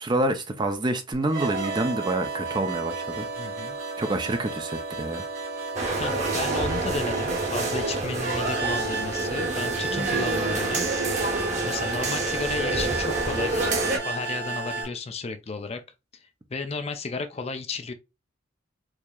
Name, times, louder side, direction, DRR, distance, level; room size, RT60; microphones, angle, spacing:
voice 1, 0.0-3.3 4.0-5.2, right 1 dB, 20° right, 0.5 m, -27 dB
sound 1, 1.2-14.8, right 4 dB, 60° right, 2.4 m, -32 dB
voice 2, 3.4-3.8 6.0-11.2 11.6-13.7 14.0-15.8 16.2-17.9, left 4 dB, 30° left, 0.4 m, -33 dB
sound 2, 5.7-14.0, right 2 dB, 35° right, 1.1 m, -28 dB
4.7 x 2.8 x 2.3 m
head